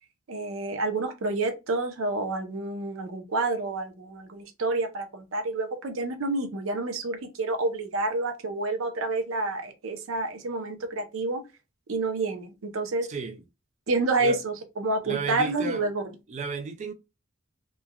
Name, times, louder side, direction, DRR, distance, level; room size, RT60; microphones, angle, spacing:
voice 1, 0.3-11.4 11.9-13.1 13.9-16.0, right 2 dB, 85° right, 0.6 m, -29 dB
voice 2, 13.1-13.4 14.2-14.4 15.0-15.8 16.3-16.9, right 5 dB, 35° right, 0.3 m, -33 dB
3.1 x 2.2 x 2.2 m
head